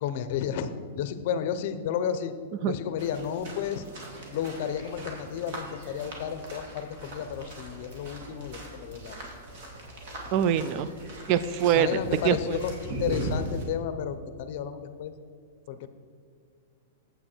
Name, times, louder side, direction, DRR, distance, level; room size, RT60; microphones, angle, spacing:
voice 1, 0.0-2.3 2.7-3.9 4.3-9.2 11.7-15.1 15.7-15.9, left 8 dB, 50° left, 11 dB, 0.6 m, -32 dB
sound 1, 3.0-13.6, right 1 dB, 50° right, 2.0 m, -39 dB
voice 2, 10.3-10.9 11.3-12.0 12.2-12.6, right 9 dB, 35° right, 14 dB, 0.3 m, -24 dB
8.9 x 8.0 x 4.4 m, 2.2 s
supercardioid pair, 160°, 0 cm